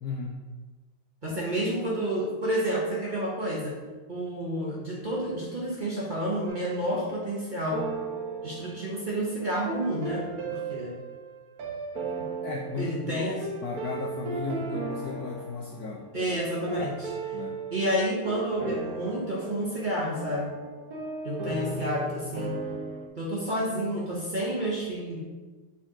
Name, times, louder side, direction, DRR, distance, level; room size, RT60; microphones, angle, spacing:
voice 1, 0.0-0.5 12.4-13.2 13.6-16.3 16.7-16.9 17.3-17.6, left 4 dB, 75° left, 2 dB, 0.9 m, -35 dB
voice 2, 1.2-3.8 4.1-7.8 8.4-10.9 12.2-12.3 12.8-13.4 16.1-17.1 17.7-20.5 21.2-22.5 23.1-25.2, right 1 dB, 30° right, -5 dB, 1.0 m, -30 dB
sound 1, 6.5-7.4 7.7-23.1, right 3 dB, 55° right, 1.3 m, -36 dB
7.1 x 4.2 x 3.8 m, 1.3 s
omnidirectional pair, 2.1 m